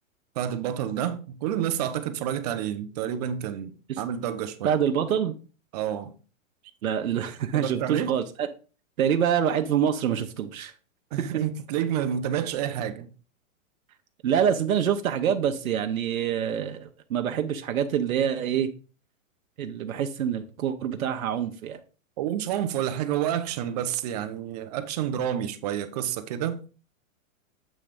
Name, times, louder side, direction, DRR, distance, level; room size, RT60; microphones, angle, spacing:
voice 1, 0.4-4.7 5.7-6.1 7.5-8.1 11.1-13.1 22.2-26.6, right 10 dB, 30° right, 0.6 m, -29 dB
voice 2, 4.6-5.3 6.8-8.5 9.0-10.7 11.3-11.4 14.2-18.7 19.6-21.8, right 8 dB, 90° right, 0.9 m, -26 dB
7.5 x 3.2 x 5.0 m
hypercardioid pair, 155°, 40 cm